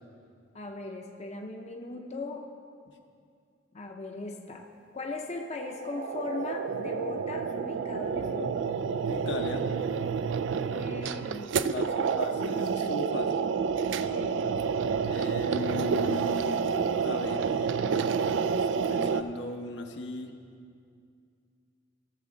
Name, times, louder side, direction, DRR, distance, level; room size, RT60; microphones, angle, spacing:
voice 1, 0.5-2.5 3.7-4.7 4.9-8.7 10.5-12.1 13.9-14.4, left 2 dB, 35° left, 2 dB, 0.7 m, -39 dB
sound 1, 5.6-19.2, right 6 dB, 70° right, 0.3 m, -29 dB
voice 2, 9.1-9.7 11.7-13.5 15.0-16.6 17.0-17.8 18.7-20.3, left 2 dB, 70° left, 3 dB, 0.9 m, -37 dB
17.5 x 7.3 x 3.9 m, 2.4 s
head